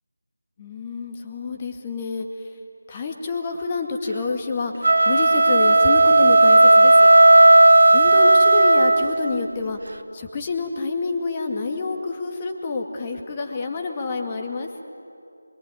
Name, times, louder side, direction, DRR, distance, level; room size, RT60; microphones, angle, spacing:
voice 1, 0.6-2.5 2.9-7.1 7.9-9.8 10.1-14.7, left 4 dB, 20° left, 3 dB, 2.1 m, -28 dB
sound 1, 4.7-9.3, right 2 dB, 55° right, 1.1 m, -13 dB
27.0 x 22.5 x 9.3 m, 2.6 s
figure-of-eight pair, 165°, 0 cm